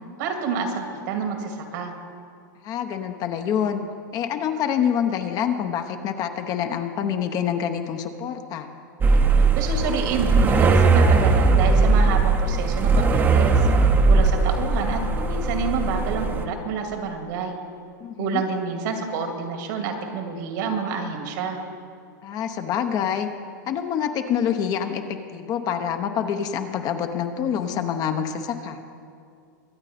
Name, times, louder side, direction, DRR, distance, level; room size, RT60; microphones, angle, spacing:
voice 1, 0.2-1.9 9.6-13.7 14.1-17.6 18.2-21.6, right 5 dB, 65° right, 4 dB, 2.2 m, -28 dB
voice 2, 2.6-3.8 4.1-8.7 18.0-18.4 22.2-23.3 23.7-28.8, left 8 dB, 35° left, 7 dB, 0.9 m, -26 dB
sound 1, 9.0-16.5, right 3 dB, 20° right, 0.9 m, -19 dB
23.5 x 8.8 x 4.3 m, 2.4 s
supercardioid pair, 135°, 11 cm